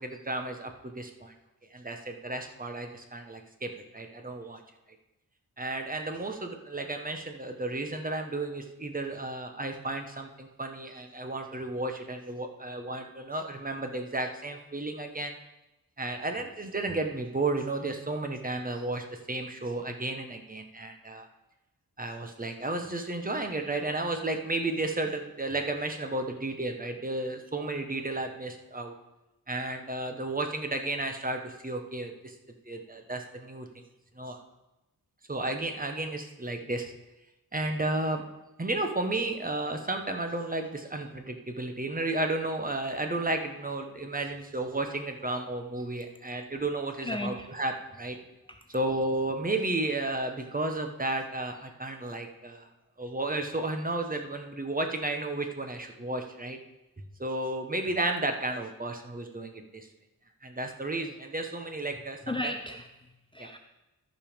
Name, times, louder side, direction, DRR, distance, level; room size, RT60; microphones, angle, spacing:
voice 1, 0.0-1.3 1.7-4.6 5.6-15.3 16.0-21.3 22.0-28.9 29.5-32.3 32.6-33.7 34.2-34.4 35.3-36.9 37.5-38.2 38.6-48.2 48.7-52.7 53.0-56.6 57.2-59.9 60.4-62.5 63.4-63.5, right 2 dB, 25° right, 5 dB, 1.2 m, -33 dB
voice 2, 47.0-47.5 48.5-48.6 62.2-63.6, left 1 dB, 15° left, 5 dB, 0.6 m, -35 dB
13.5 x 5.3 x 5.2 m, 0.98 s
wide cardioid pair, 90°, 35 cm